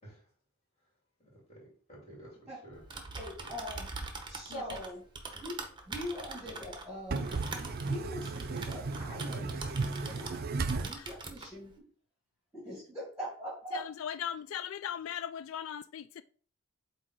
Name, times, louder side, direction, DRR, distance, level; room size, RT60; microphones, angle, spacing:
voice 1, 1.2-2.8 3.4-3.5, right 1 dB, 30° left, 3.1 m, -52 dB
Typing, 2.7-10.4 10.7-11.5, right 3 dB, 20° right, 0.9 m, -43 dB
voice 2, 3.2-3.9 4.3-5.0 5.4-5.5 5.9-7.2 7.9-9.4 10.2-10.3 10.7-11.8 12.5-13.8, equal, 5° right, 2.4 m, -41 dB
voice 3, 4.5-4.8 13.7-16.2, left 9 dB, 75° left, 0.3 m, -39 dB
voice 4, 7.1-10.9, right 3 dB, 50° right, 0.6 m, -34 dB
7.9 x 2.9 x 4.6 m
head